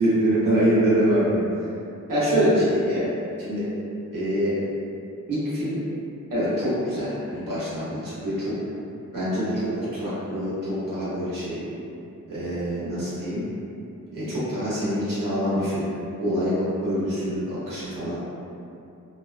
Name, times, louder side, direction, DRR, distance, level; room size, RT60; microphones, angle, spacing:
voice 1, 0.0-1.6 2.1-3.1 3.4-3.7 4.1-4.6 5.3-5.8 6.3-8.5 9.1-11.6 12.3-13.4 14.1-15.9 16.2-18.2, equal, 90° right, -11 dB, 1.1 m, -25 dB
2.7 x 2.2 x 2.4 m, 2.7 s
wide cardioid pair, 110°, 32 cm